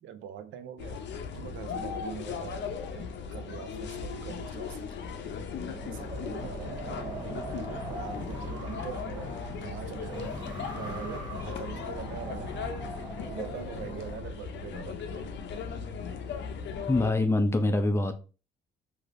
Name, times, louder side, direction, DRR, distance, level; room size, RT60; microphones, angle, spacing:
voice 1, 0.0-1.0 1.3-4.9 5.7-7.3 7.7-9.3 9.6-10.3 10.7-12.5 13.2-15.6, right 9 dB, 75° right, 0.5 m, -43 dB
sound 1, 0.8-17.1, left 6 dB, 65° left, 0.5 m, -37 dB
Wind, 5.5-14.2, right 1 dB, 20° right, 1.0 m, -41 dB
voice 2, 16.9-18.1, left 2 dB, 15° left, 0.5 m, -24 dB
3.1 x 2.7 x 2.5 m
cardioid pair, 90°, 20 cm